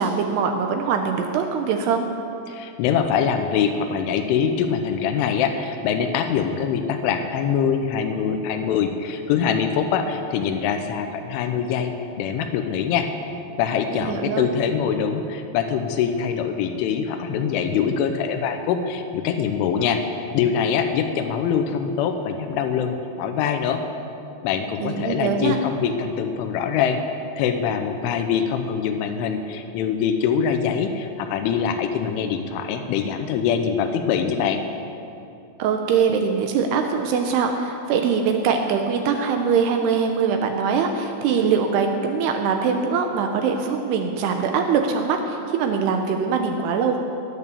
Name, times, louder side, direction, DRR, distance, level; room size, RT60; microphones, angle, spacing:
voice 1, 0.0-2.1 13.9-14.5 24.8-25.6 35.6-47.0, right 6 dB, 80° right, 4 dB, 2.4 m, -22 dB
voice 2, 2.5-11.9 12.2-13.1 13.6-20.0 20.3-23.8 24.4-27.0 27.4-34.6, left 7 dB, 85° left, 6 dB, 3.3 m, -23 dB
16.5 x 9.1 x 6.9 m, 2.7 s
omnidirectional pair, 5.5 m